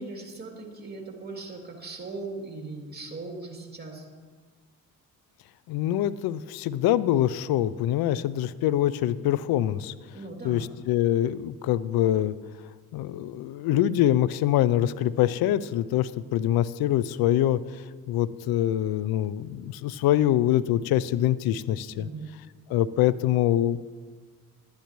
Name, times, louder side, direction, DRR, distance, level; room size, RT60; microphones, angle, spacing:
voice 1, 0.0-4.0 10.1-10.7 21.9-22.3, right 3 dB, 25° right, 0 dB, 2.8 m, -39 dB
voice 2, 5.7-9.9 10.4-12.4 12.9-17.6 18.1-22.1 22.7-23.8, left 12 dB, 75° left, 17 dB, 0.5 m, -24 dB
11.5 x 10.5 x 3.1 m, 1.5 s
supercardioid pair, 55°, 37 cm